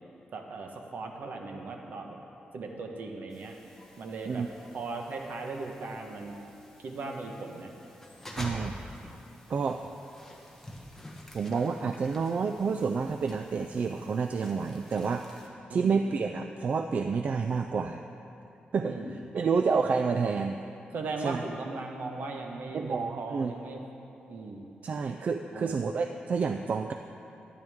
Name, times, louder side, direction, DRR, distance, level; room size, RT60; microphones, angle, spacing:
voice 1, 0.3-2.2 2.5-3.6 4.0-4.5 4.7-6.4 6.8-7.7 15.7-16.0 18.8-19.2 20.9-23.8 24.3-24.7 25.5-25.7, right 3 dB, 70° right, 2 dB, 1.1 m, -38 dB
sound 1, 3.3-15.5, left 1 dB, 10° left, 1.1 m, -48 dB
voice 2, 8.4-8.8 9.5-9.8 11.3-18.0 18.7-19.0 19.3-20.6 21.2-21.4 22.7-23.5 24.8-26.9, right 5 dB, 45° right, 6 dB, 0.3 m, -29 dB
12.5 x 10.5 x 3.6 m, 2.8 s
wide cardioid pair, 145°, 3 cm